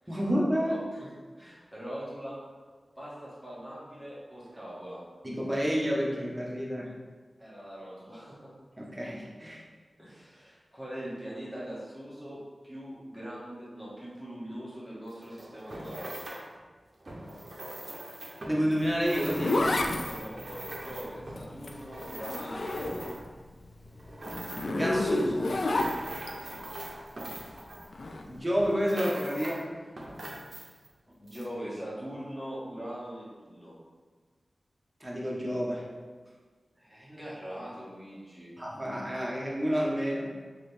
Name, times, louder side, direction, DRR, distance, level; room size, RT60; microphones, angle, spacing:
voice 1, 0.1-0.8 5.2-6.9 8.8-9.6 18.4-19.6 24.6-25.6 28.2-29.7 35.0-35.9 38.6-40.3, equal, 15° right, -4 dB, 0.9 m, -29 dB
voice 2, 0.6-1.1 1.4-2.4 3.0-5.0 7.4-8.5 10.0-16.1 20.0-23.1 26.4-26.6 30.6-30.7 31.2-33.8 36.8-38.6, equal, 5° left, -8 dB, 1.3 m, -42 dB
sound 1, 15.1-16.5 17.0-23.4 23.9-24.9 25.4-28.2 28.6-29.7 30.0-30.9 31.3-31.4, right 1 dB, 45° right, 0.6 m, -42 dB
Zipper (clothing), 18.8-23.3 23.6-26.3 27.9-28.2, left 2 dB, 70° left, 0.3 m, -30 dB
3.9 x 2.9 x 3.2 m, 1.5 s
wide cardioid pair, 85°, 0 cm